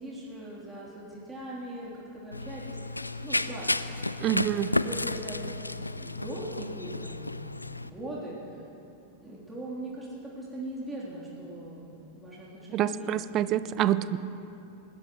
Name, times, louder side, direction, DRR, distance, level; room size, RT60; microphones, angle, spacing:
voice 1, 0.0-5.6 5.9-7.5 7.8-8.6 9.2-13.2 14.1-14.2, right 1 dB, 5° right, -8 dB, 3.4 m, -40 dB
Run, 2.3-7.9, left 2 dB, 85° left, 0.4 m, -32 dB
voice 2, 4.2-4.7 12.7-14.2, right 12 dB, 35° right, 16 dB, 0.5 m, -27 dB
20.5 x 17.0 x 3.1 m, 2.8 s
figure-of-eight pair, 90°, 0 cm